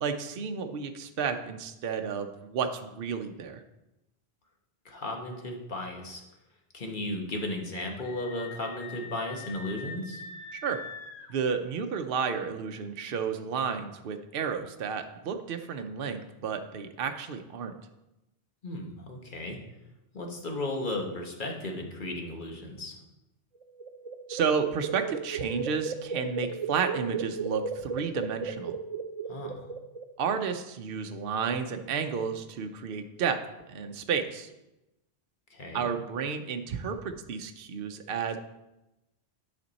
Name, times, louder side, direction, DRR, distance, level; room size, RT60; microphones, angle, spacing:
voice 1, 0.0-3.6 10.5-10.8 11.3-17.7 24.3-28.8 30.2-33.4 33.7-34.5 35.7-38.4, right 6 dB, 65° right, 6 dB, 0.8 m, -31 dB
voice 2, 4.8-6.2 6.7-10.2 18.6-19.6 20.1-23.0 29.3-29.7 35.5-35.9, left 1 dB, 50° left, 2 dB, 1.3 m, -35 dB
Screaming, 8.0-11.3, left 5 dB, 80° left, 1.1 m, -43 dB
sound 1, 23.6-30.3, right 5 dB, 45° right, 0.4 m, -36 dB
10.5 x 5.2 x 4.0 m, 0.94 s
omnidirectional pair, 1.1 m